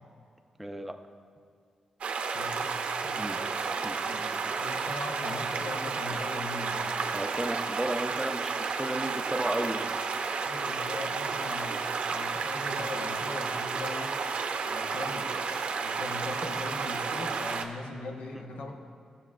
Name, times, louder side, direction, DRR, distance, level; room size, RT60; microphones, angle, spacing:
voice 1, 0.6-0.9 3.2-3.4 3.8-4.0 7.1-10.0, right 1 dB, 5° right, 4 dB, 0.5 m, -34 dB
sound 1, 2.0-17.6, right 5 dB, 65° right, 0.6 m, -32 dB
voice 2, 2.3-2.7 3.0-3.2 4.0-6.8 10.4-11.8 12.1-14.2 14.6-15.3 15.8-18.7, left 2 dB, 80° left, 1 dB, 1.0 m, -40 dB
16.0 x 6.7 x 2.4 m, 2.3 s
wide cardioid pair, 130°, 2 cm